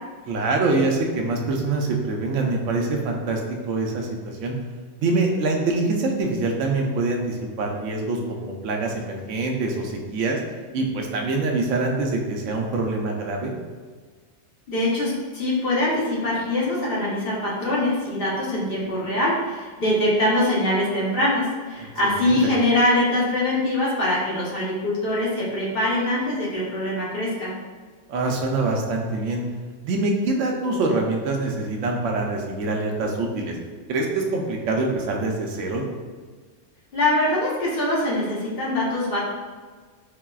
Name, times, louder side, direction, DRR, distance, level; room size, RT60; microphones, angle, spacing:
voice 1, 0.3-3.4 3.7-4.5 5.0-10.4 10.7-13.5 21.8-21.9 22.2-22.4 28.1-29.4 29.8-33.6 33.9-35.8, right 3 dB, 85° right, 1 dB, 0.9 m, -25 dB
voice 2, 14.7-27.5 36.9-39.2, left 1 dB, 55° left, -6 dB, 1.0 m, -23 dB
4.5 x 2.0 x 2.3 m, 1.5 s
omnidirectional pair, 1.2 m